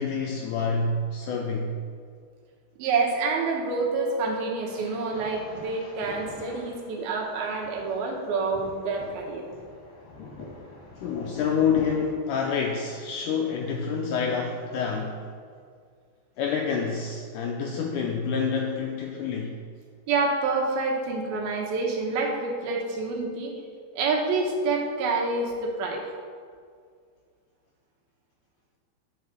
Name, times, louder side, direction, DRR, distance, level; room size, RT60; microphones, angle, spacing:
voice 1, 0.0-1.8 11.0-15.2 16.4-19.6, left 5 dB, 85° left, 1 dB, 1.8 m, -27 dB
voice 2, 2.8-9.4 20.1-23.5 23.9-26.0, right 3 dB, 85° right, 0 dB, 3.0 m, -27 dB
sound 1, 4.7-11.9, left 3 dB, 65° left, 4.0 m, -44 dB
10.0 x 4.8 x 6.3 m, 2.1 s
omnidirectional pair, 4.3 m